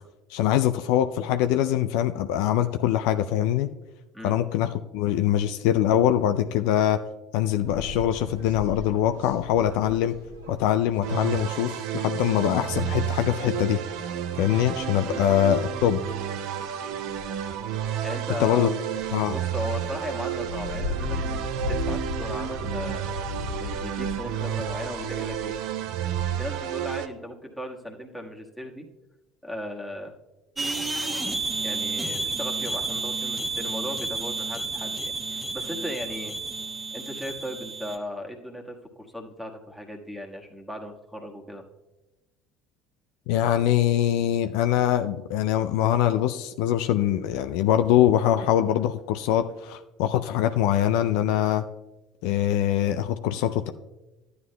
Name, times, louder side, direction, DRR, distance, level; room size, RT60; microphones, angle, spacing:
voice 1, 0.3-3.7 4.2-7.0 7.3-10.2 10.5-13.8 14.4-16.0 18.4-18.7 19.1-19.4 43.3-51.6 52.2-53.7, left 11 dB, 65° left, 8 dB, 0.3 m, -23 dB
sound 1, 7.6-26.4, left 2 dB, 85° right, 1.2 m, -38 dB
sound 2, 11.0-27.1, right 10 dB, 65° right, 0.5 m, -31 dB
voice 2, 18.0-18.8 19.3-23.1 23.5-25.5 26.4-28.9 29.4-30.1 31.2-31.3 31.6-36.4 36.9-41.6, equal, ahead, 1 dB, 1.4 m, -37 dB
sound 3, 30.6-38.0, right 3 dB, 20° right, 1.1 m, -31 dB
12.5 x 9.4 x 2.2 m, 1.0 s
hypercardioid pair, 65°, 0 cm